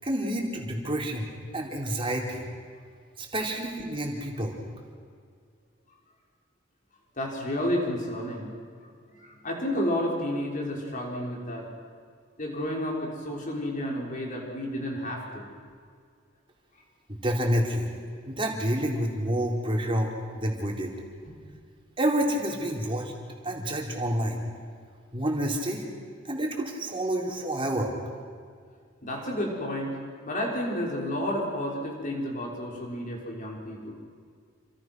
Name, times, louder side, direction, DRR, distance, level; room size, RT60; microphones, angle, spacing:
voice 1, 0.0-2.4 3.2-4.5 17.2-17.9 18.2-20.1 20.3-20.9 22.0-23.1 23.4-24.4 25.1-25.8 26.3-27.9, right 1 dB, 30° right, 0 dB, 4.2 m, -28 dB
voice 2, 7.2-8.5 9.1-11.6 12.4-15.5 29.0-30.0 30.2-33.9, left 1 dB, 45° left, -2 dB, 6.1 m, -31 dB
29.0 x 26.5 x 6.4 m, 2.1 s
head